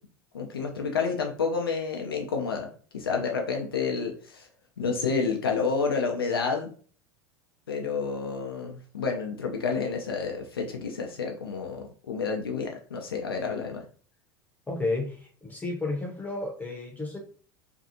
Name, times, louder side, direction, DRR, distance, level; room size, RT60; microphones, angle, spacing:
voice 1, 0.3-2.7 2.9-4.5 4.8-6.7 7.7-13.8, left 5 dB, 85° left, 2 dB, 0.4 m, -29 dB
voice 2, 14.7-17.2, left 2 dB, 15° left, 0 dB, 0.7 m, -32 dB
2.5 x 2.3 x 2.7 m, 0.42 s
hypercardioid pair, 80°, 12 cm